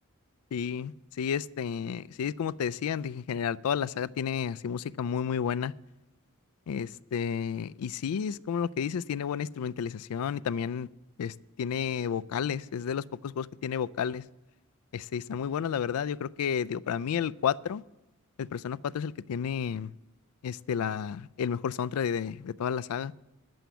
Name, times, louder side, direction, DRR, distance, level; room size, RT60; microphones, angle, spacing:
voice 1, 0.5-5.7 6.7-10.9 11.2-14.2 14.9-17.8 18.4-19.9 20.4-23.1, left 7 dB, 85° left, 0.4 m, -31 dB
10.0 x 7.8 x 6.9 m
head